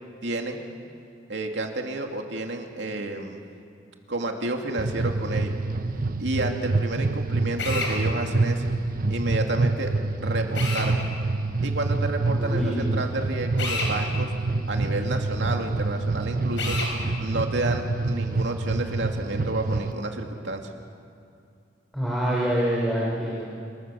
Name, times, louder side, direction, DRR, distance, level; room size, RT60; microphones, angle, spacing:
voice 1, 0.2-0.6 1.3-3.4 4.1-5.6 6.2-8.6 9.1-9.9 10.2-10.9 11.6-14.3 14.7-16.8 17.2-20.6, right 2 dB, 75° right, 3 dB, 2.6 m, -30 dB
sound 1, 4.8-19.9, right 3 dB, 50° right, 0.7 m, -27 dB
Drill, 7.6-7.9 10.5-10.9 13.6-13.9 16.6-16.9, left 3 dB, 85° left, 5.3 m, -29 dB
voice 2, 12.4-12.9 21.9-23.5, equal, ahead, -6 dB, 4.0 m, -26 dB
26.5 x 22.0 x 7.2 m, 2.4 s
head